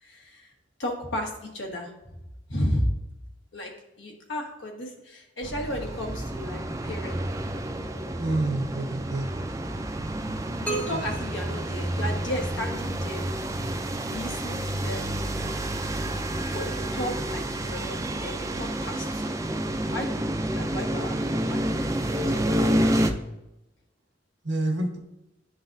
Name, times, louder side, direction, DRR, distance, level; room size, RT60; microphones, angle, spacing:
voice 1, 0.0-0.5 0.8-1.9 2.5-2.9 3.5-7.2 10.6-13.2 14.0-15.1 16.5-19.4 19.9-21.2 21.4-21.7 22.0-23.0, equal, 80° left, 1 dB, 1.4 m, -34 dB
sound 1, 5.4-23.1, right 1 dB, 15° right, 0.4 m, -29 dB
voice 2, 8.2-9.2 24.4-25.0, right 2 dB, 90° right, 2 dB, 1.2 m, -27 dB
sound 2, 10.7-12.6, right 2 dB, 5° left, 0.8 m, -36 dB
11.0 x 3.9 x 2.6 m, 0.93 s
head